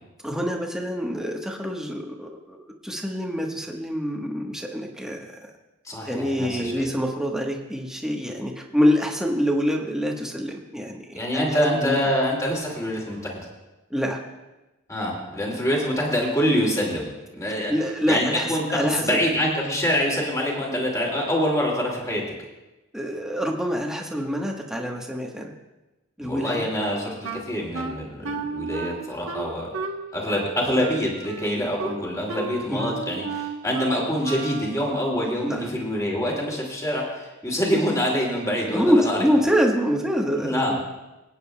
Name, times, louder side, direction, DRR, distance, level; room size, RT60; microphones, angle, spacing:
voice 1, 0.2-5.5 6.1-12.0 13.9-14.2 17.7-19.2 22.9-25.5 26.2-26.7 32.7-33.0 35.4-35.7 38.7-40.8, equal, 5° right, 0 dB, 1.3 m, -26 dB
voice 2, 5.8-6.9 11.1-13.4 14.9-17.7 18.1-22.2 26.2-29.7 30.1-39.2 40.4-40.8, equal, 15° left, -2 dB, 2.4 m, -25 dB
Wind instrument woodwind instrument, 27.2-34.8, right 4 dB, 90° right, 1.1 m, -34 dB
25.5 x 9.3 x 2.3 m, 1.0 s
head